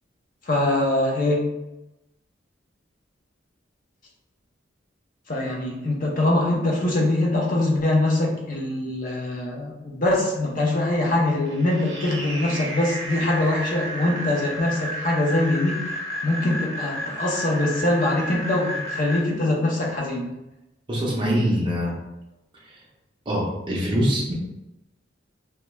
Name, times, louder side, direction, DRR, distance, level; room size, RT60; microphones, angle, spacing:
voice 1, 0.4-1.4 5.3-16.0 16.2-20.3, left 1 dB, 45° left, -1 dB, 0.6 m, -23 dB
sound 1, 11.5-19.2, equal, 75° right, 0.6 m, -32 dB
voice 2, 20.9-21.9 22.6-22.8 23.3-24.3, equal, 25° right, -4 dB, 0.5 m, -24 dB
2.2 x 2.1 x 3.0 m, 0.95 s
head